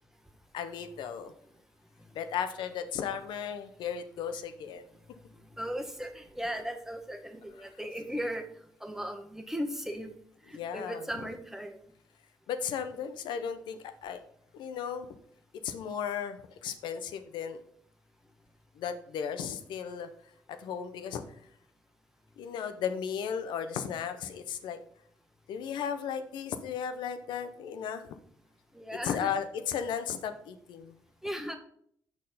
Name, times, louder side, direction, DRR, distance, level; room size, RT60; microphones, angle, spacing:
voice 1, 0.5-1.3 2.1-4.8 10.5-11.0 12.5-14.2 14.5-15.1 15.6-17.6 18.8-20.1 20.5-21.2 22.4-24.8 25.5-28.2 29.0-30.9, left 8 dB, 85° left, 9 dB, 0.7 m, -35 dB
voice 2, 5.6-8.4 8.8-10.1 10.5-11.8 28.7-29.4 31.2-31.6, equal, 5° right, 4 dB, 1.3 m, -37 dB
6.3 x 4.5 x 5.5 m, 0.65 s
supercardioid pair, 60°, 8 cm